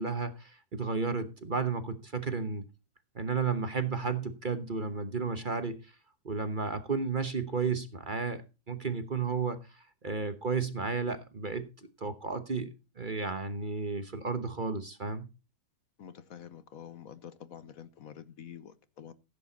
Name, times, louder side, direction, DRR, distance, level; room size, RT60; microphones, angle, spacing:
voice 1, 0.0-2.6 3.1-5.9 6.2-8.4 8.7-15.3, right 5 dB, 35° right, 1.1 m, -33 dB
voice 2, 16.0-19.1, left 9 dB, 65° left, 1.3 m, -47 dB
15.5 x 8.4 x 4.0 m
omnidirectional pair, 1.6 m